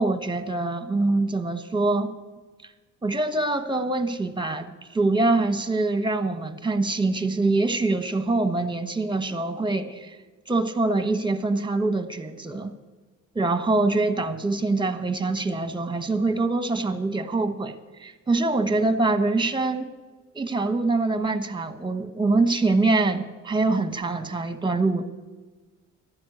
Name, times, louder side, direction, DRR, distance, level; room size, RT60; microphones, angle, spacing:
voice 1, 0.0-2.1 3.0-10.2 10.5-12.7 13.3-19.9 20.3-25.0, right 3 dB, 15° right, 10 dB, 1.2 m, -24 dB
12.0 x 10.0 x 9.8 m, 1.3 s
cardioid pair, 90°, 30 cm